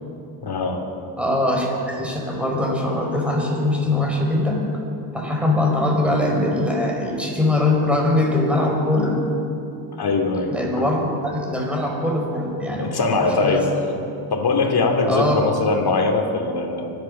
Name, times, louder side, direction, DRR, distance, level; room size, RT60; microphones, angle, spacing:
voice 1, 0.4-0.8 10.0-10.9 12.8-13.7 14.3-16.9, left 3 dB, 55° left, 3 dB, 2.6 m, -21 dB
voice 2, 1.2-4.6 5.1-9.2 10.5-12.9 13.3-13.6 15.1-15.3, left 1 dB, 5° right, -1 dB, 4.8 m, -22 dB
25.0 x 8.4 x 6.6 m, 2.6 s
cardioid pair, 80°, 45 cm